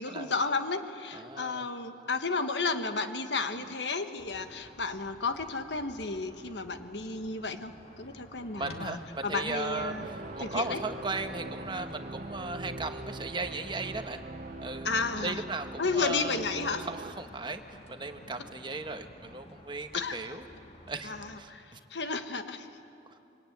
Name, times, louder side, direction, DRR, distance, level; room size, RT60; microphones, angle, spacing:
voice 1, 0.0-7.7 8.0-10.1 10.4-10.8 14.8-15.4 15.8-16.9 19.9-20.4 21.0-22.7, left 4 dB, 85° left, 8 dB, 1.4 m, -33 dB
voice 2, 1.1-1.6 3.6-3.7 8.5-14.2 14.6-14.9 15.2-16.4 16.8-20.4 20.9-21.1 21.4-21.8 23.1-23.2, right 3 dB, 25° right, 7 dB, 1.1 m, -37 dB
sound 1, 4.2-21.4, left 1 dB, 35° left, 2.2 m, -51 dB
sound 2, 9.7-17.1, right 2 dB, 45° right, 0.6 m, -42 dB
25.5 x 23.5 x 9.3 m, 2.8 s
head